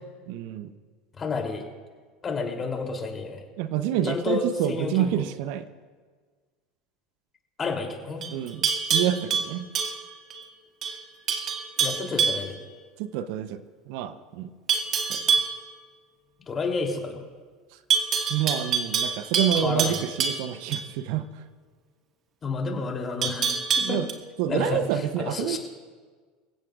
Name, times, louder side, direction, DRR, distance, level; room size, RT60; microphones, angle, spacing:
voice 1, 0.3-0.7 3.6-5.6 8.3-9.7 13.0-13.6 13.9-14.5 15.1-15.2 18.3-21.2 23.8-24.1 24.4-25.6, right 10 dB, 65° right, 11 dB, 0.8 m, -28 dB
voice 2, 1.2-1.6 2.2-3.4 4.0-5.2 7.6-8.2 11.8-12.6 16.5-17.3 19.5-20.0 22.4-23.5 23.9-24.0 24.5-25.6, left 4 dB, 30° left, 1 dB, 3.3 m, -30 dB
Livestock farm animals working animals, 8.2-10.4 10.8-11.0 11.3-12.5 14.7-15.6 17.9-20.9 23.2-24.1, right 6 dB, 40° right, 2.2 m, -26 dB
27.0 x 16.0 x 2.5 m, 1.5 s
hypercardioid pair, 80°, 0 cm